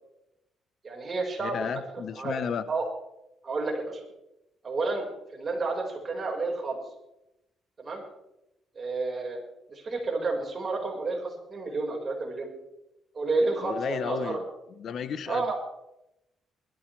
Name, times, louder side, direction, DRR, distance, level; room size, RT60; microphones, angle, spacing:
voice 1, 0.8-1.7 2.1-2.3 2.7-2.8 3.4-4.0 4.6-5.1 5.3-6.8 7.8-8.0 8.8-9.4 9.7-12.5 13.1-14.4 15.3-15.5, right 3 dB, 35° right, -1 dB, 5.3 m, -30 dB
voice 2, 1.4-2.7 13.6-14.4 14.7-15.5, left 7 dB, 65° left, 13 dB, 1.1 m, -33 dB
20.5 x 13.5 x 3.5 m, 0.87 s
cardioid pair, 90°, 0 cm